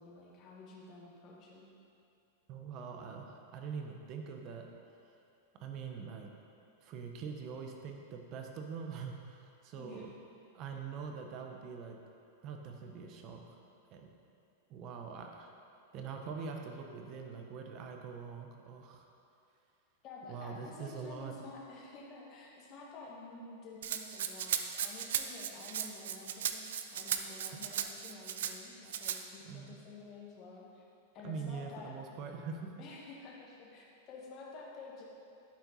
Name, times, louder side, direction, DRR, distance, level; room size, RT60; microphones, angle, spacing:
voice 1, 0.0-1.7 9.8-10.1 20.0-30.8 31.1-31.9 32.8-35.0, left 3 dB, 40° left, -3 dB, 1.7 m, -50 dB
voice 2, 2.5-4.7 5.6-6.3 6.8-10.1 10.5-12.0 12.4-13.4 13.9-14.1 14.7-15.5 15.9-19.0 20.3-21.3 27.5-27.6 29.4-29.7 31.2-32.7, right 5 dB, 40° right, 3 dB, 1.0 m, -43 dB
Rattle (instrument), 23.8-28.5 28.9-29.2, right 9 dB, 75° right, 0.5 m, -36 dB
11.5 x 4.5 x 4.1 m, 2.6 s
hypercardioid pair, 130°, 0 cm